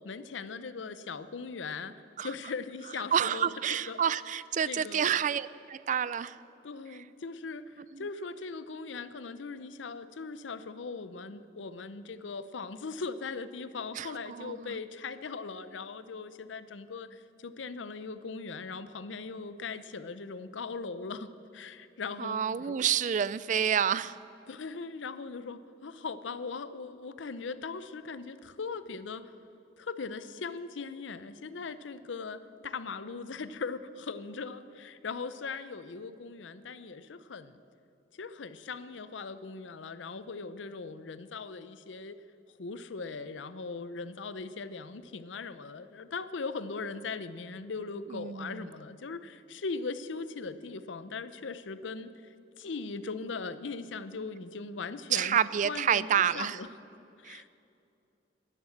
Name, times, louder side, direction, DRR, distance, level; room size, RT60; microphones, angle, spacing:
voice 1, 0.0-1.9 2.2-4.0 4.7-5.1 6.6-22.8 24.5-29.2 29.8-37.6 38.1-42.2 42.6-52.1 52.6-56.7 57.2-57.5, left 4 dB, 85° left, 13 dB, 0.6 m, -39 dB
voice 2, 3.1-6.4 7.9-8.0 13.9-14.8 22.2-24.2 48.1-48.6 55.1-56.6 57.2-57.5, right 8 dB, 45° right, 17 dB, 0.4 m, -29 dB
13.0 x 11.0 x 7.8 m, 2.6 s
head